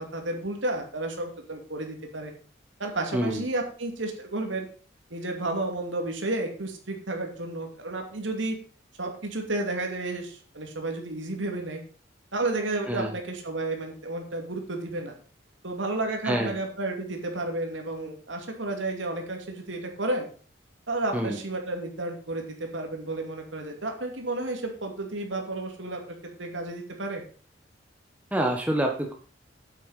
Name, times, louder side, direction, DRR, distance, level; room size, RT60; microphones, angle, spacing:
voice 1, 0.0-2.3 2.8-4.7 5.1-8.6 9.0-11.8 12.3-15.1 15.6-20.3 20.9-27.2, right 2 dB, 85° right, 3 dB, 2.6 m, -32 dB
voice 2, 28.3-29.1, right 1 dB, 10° right, 1 dB, 1.4 m, -26 dB
8.7 x 8.4 x 5.7 m, 0.40 s
head